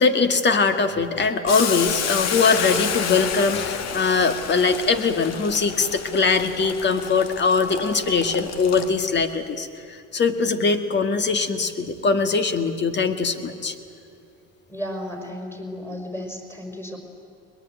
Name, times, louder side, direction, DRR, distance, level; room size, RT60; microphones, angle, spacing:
voice 1, 0.0-13.7, left 4 dB, 35° left, 8 dB, 2.0 m, -21 dB
Boiling, 1.5-9.3, left 7 dB, 60° left, 1.7 m, -30 dB
voice 2, 14.7-17.0, equal, 5° left, 4 dB, 5.6 m, -33 dB
22.0 x 21.5 x 9.4 m, 2.7 s
cardioid pair, 100°, 29 cm